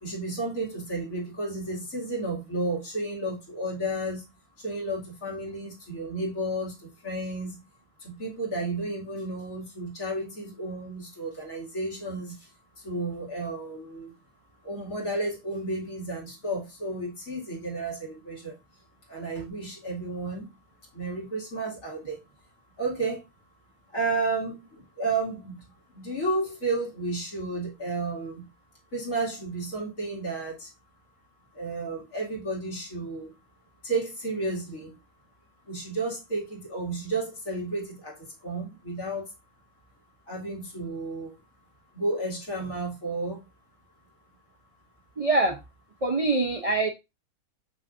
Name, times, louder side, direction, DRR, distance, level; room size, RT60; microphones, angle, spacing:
voice 1, 0.0-4.2 4.6-7.6 8.0-12.3 12.8-14.1 14.6-18.6 19.1-20.5 20.9-22.2 22.8-23.2 23.9-25.6 25.9-28.4 28.9-30.7 31.6-33.3 33.8-34.9 35.7-38.2 38.4-39.2 40.3-41.3 41.9-43.4, right 2 dB, 60° left, 2.8 m, -32 dB
voice 2, 45.2-45.6 46.0-46.9, right 2 dB, 40° right, 0.5 m, -24 dB
6.3 x 6.0 x 2.5 m
omnidirectional pair, 1.6 m